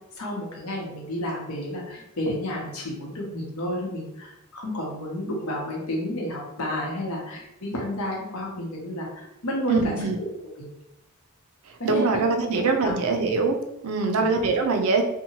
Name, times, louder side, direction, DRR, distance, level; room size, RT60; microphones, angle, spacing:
voice 1, 0.2-10.2 10.6-10.7 11.8-12.0 12.4-12.9 14.0-14.3, left 1 dB, 85° left, -1 dB, 0.8 m, -31 dB
voice 2, 9.7-10.2 11.8-15.0, right 4 dB, 90° right, 5 dB, 0.4 m, -23 dB
2.7 x 2.1 x 2.9 m, 0.88 s
head